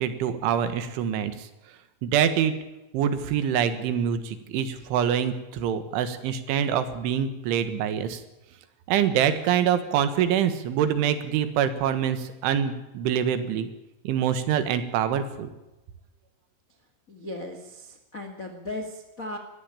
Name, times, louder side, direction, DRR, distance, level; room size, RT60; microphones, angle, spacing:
voice 1, 0.0-1.3 2.0-2.5 2.9-8.2 8.9-13.7 14.1-15.5, right 9 dB, 80° right, 10 dB, 3.9 m, -25 dB
voice 2, 17.1-19.4, left 1 dB, 75° left, 5 dB, 0.7 m, -37 dB
21.0 x 14.5 x 8.6 m, 0.97 s
omnidirectional pair, 5.5 m